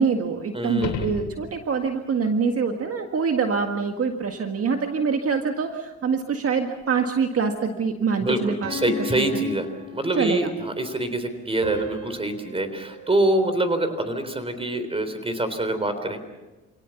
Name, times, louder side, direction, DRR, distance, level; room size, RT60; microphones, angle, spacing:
voice 1, 0.0-8.7 9.3-9.4 10.2-10.5, right 5 dB, 50° right, 5 dB, 1.9 m, -25 dB
voice 2, 0.5-1.1 8.2-16.2, right 1 dB, 20° right, 10 dB, 3.7 m, -25 dB
sound 1, 0.7-2.0 6.8-6.9, left 7 dB, 80° left, 2.7 m, -33 dB
sound 2, 8.6-10.6 11.6-14.0, left 1 dB, 70° right, 4.9 m, -37 dB
28.0 x 18.0 x 7.2 m, 1.1 s
cardioid pair, 90°, 30 cm